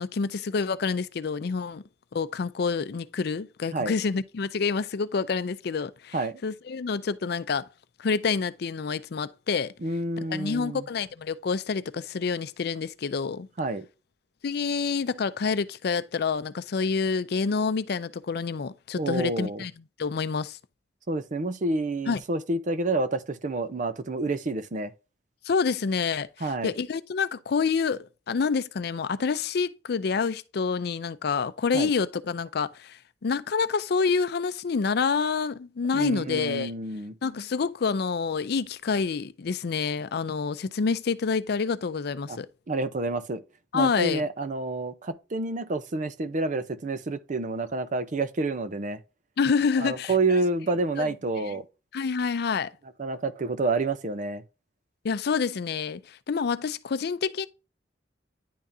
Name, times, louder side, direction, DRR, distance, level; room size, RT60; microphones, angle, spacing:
voice 1, 0.0-1.8 2.1-6.2 6.4-7.7 8.0-9.7 10.3-13.5 14.4-19.7 20.0-20.6 22.1-22.2 25.4-36.7 37.2-42.5 43.7-44.2 49.4-50.1 51.0-51.1 51.4-51.5 51.9-52.7 55.0-57.5, left 5 dB, 65° left, 0.5 m, -27 dB
voice 2, 9.8-10.8 13.6-13.9 19.0-19.6 21.1-24.9 26.4-26.7 31.7-31.9 35.9-37.1 42.3-42.4 42.7-43.4 43.7-49.0 49.8-51.6 53.0-54.4, right 2 dB, 45° right, 0.6 m, -28 dB
10.0 x 3.6 x 2.6 m
head